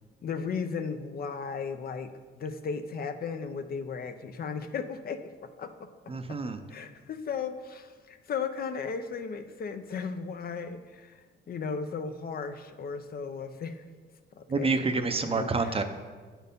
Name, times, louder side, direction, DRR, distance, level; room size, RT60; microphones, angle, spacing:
voice 1, 0.2-5.9 6.7-11.2 11.5-13.8 14.4-15.8, left 5 dB, 50° left, 9 dB, 0.6 m, -36 dB
voice 2, 6.1-6.6 14.5-15.8, right 3 dB, 30° right, 8 dB, 0.6 m, -28 dB
8.0 x 4.5 x 5.1 m, 1.5 s
cardioid pair, 90°, 20 cm